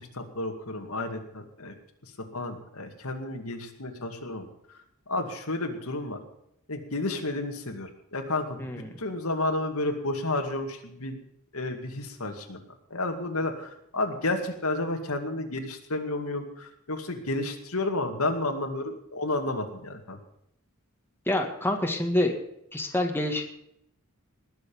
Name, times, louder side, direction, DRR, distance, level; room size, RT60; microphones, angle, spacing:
voice 1, 0.0-1.7 2.3-4.5 5.1-6.2 6.7-11.2 11.5-12.6 12.9-20.2, left 2 dB, 80° left, 4 dB, 2.3 m, -31 dB
voice 2, 8.6-8.9 21.3-22.3 22.7-23.4, left 1 dB, 10° left, 3 dB, 1.8 m, -27 dB
20.0 x 7.1 x 7.0 m, 0.75 s
head